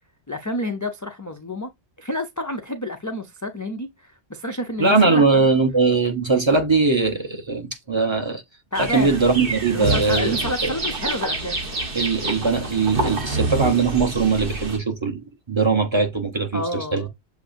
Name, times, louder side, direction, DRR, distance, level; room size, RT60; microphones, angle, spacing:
voice 1, 0.3-1.7 2.0-5.4 8.7-9.2 9.7-11.9 16.5-17.1, left 1 dB, 25° left, 0.4 m, -29 dB
voice 2, 4.8-8.4 8.8-10.4 11.9-15.2 15.5-17.1, right 4 dB, 25° right, 0.9 m, -20 dB
sound 1, 8.7-14.8, right 2 dB, 55° right, 1.4 m, -27 dB
7.1 x 2.8 x 2.6 m
omnidirectional pair, 1.1 m